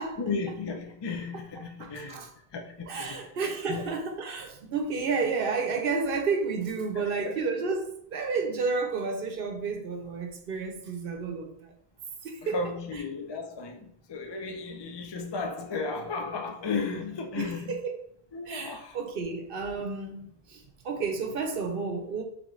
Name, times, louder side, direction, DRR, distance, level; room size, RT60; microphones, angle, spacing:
voice 1, 0.0-2.2 2.5-3.3 3.7-3.9 6.9-7.3 12.4-17.8 18.3-19.0, left 4 dB, 45° left, 0.3 m, -34 dB
voice 2, 1.3-2.3 2.9-11.7 12.2-12.5 17.4-18.0 18.5-22.2, right 4 dB, 65° right, 0.8 m, -31 dB
3.7 x 3.4 x 3.0 m
omnidirectional pair, 1.0 m